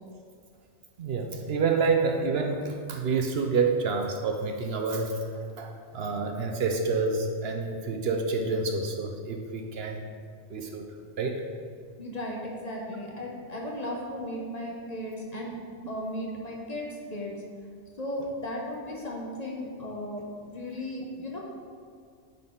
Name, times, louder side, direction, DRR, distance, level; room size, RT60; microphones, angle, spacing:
voice 1, 1.0-5.2 5.6-10.0 10.5-10.8 11.2-11.4, right 4 dB, 65° right, 3 dB, 0.8 m, -28 dB
voice 2, 12.0-17.4 18.0-21.4, left 1 dB, 40° left, -2 dB, 0.8 m, -36 dB
9.3 x 3.9 x 3.8 m, 2.2 s
omnidirectional pair, 1.2 m